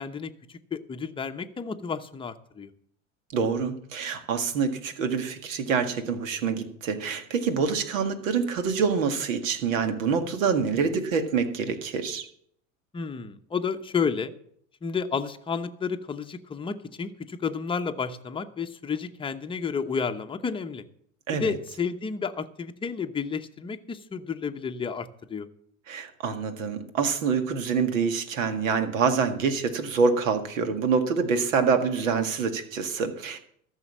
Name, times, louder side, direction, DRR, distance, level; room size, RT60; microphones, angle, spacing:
voice 1, 0.0-2.7 12.9-14.3 14.8-20.8 21.3-25.5, left 5 dB, 15° left, 7 dB, 0.8 m, -31 dB
voice 2, 3.3-12.3 21.3-21.6 25.9-33.4, right 5 dB, 70° right, 8 dB, 1.9 m, -26 dB
14.0 x 6.5 x 7.4 m, 0.66 s
hypercardioid pair, 95°, 40 cm